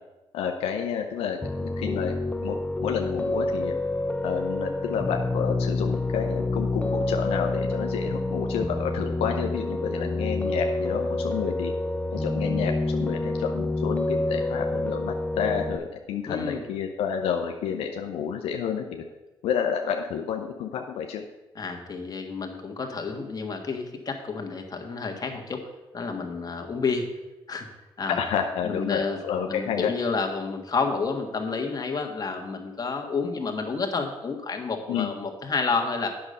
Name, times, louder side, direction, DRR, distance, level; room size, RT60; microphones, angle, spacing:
voice 1, 0.3-2.1 2.4-3.7 4.2-11.7 12.1-19.0 19.4-21.2 28.1-29.9 34.9-35.1, left 7 dB, 90° left, 3 dB, 0.7 m, -30 dB
Piano, 1.4-15.8, left 2 dB, 15° left, 0.6 m, -28 dB
voice 2, 16.3-16.6 21.6-25.6 25.9-27.0 27.5-27.7 28.0-28.2 28.6-29.2 29.5-36.1, left 4 dB, 40° left, 3 dB, 1.6 m, -30 dB
8.7 x 6.6 x 5.5 m, 1.1 s
cardioid pair, 75°, 10 cm